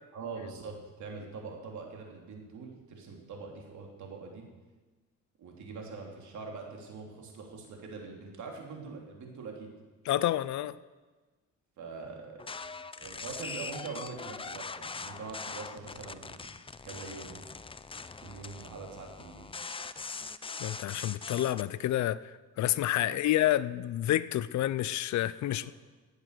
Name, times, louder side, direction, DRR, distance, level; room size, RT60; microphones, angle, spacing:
voice 1, 0.1-4.5 5.4-9.7 11.8-12.4 13.0-16.5 16.8-17.4 18.2-19.5 23.0-23.3 25.6-25.7, right 4 dB, 70° right, 1 dB, 3.1 m, -43 dB
voice 2, 10.1-10.8 20.6-22.2 22.6-25.7, left 13 dB, 70° left, 17 dB, 0.6 m, -29 dB
sound 1, 12.4-21.7, left 4 dB, 20° left, 0.5 m, -42 dB
16.5 x 8.0 x 6.7 m, 1.3 s
cardioid pair, 90°, 30 cm